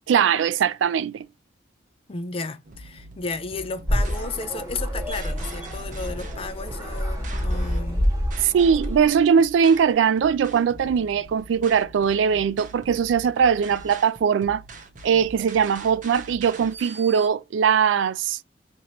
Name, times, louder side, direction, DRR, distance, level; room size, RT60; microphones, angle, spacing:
voice 1, 0.1-1.3 8.4-14.6 15.0-18.4, right 7 dB, 80° right, 0.3 m, -20 dB
voice 2, 2.1-8.1, left 4 dB, 30° left, 0.5 m, -33 dB
sound 1, 2.6-17.3, right 2 dB, 45° right, 0.7 m, -44 dB
sound 2, 3.9-9.1, equal, 20° right, 1.3 m, -27 dB
2.9 x 2.6 x 4.3 m
head